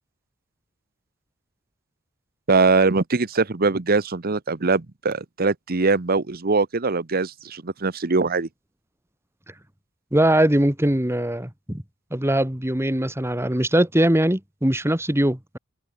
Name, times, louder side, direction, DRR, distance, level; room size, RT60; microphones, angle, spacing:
voice 1, 2.5-8.5, right 3 dB, 50° right, 1.0 m, -22 dB
voice 2, 10.1-11.8 12.1-15.6, right 1 dB, 15° right, 2.3 m, -21 dB
head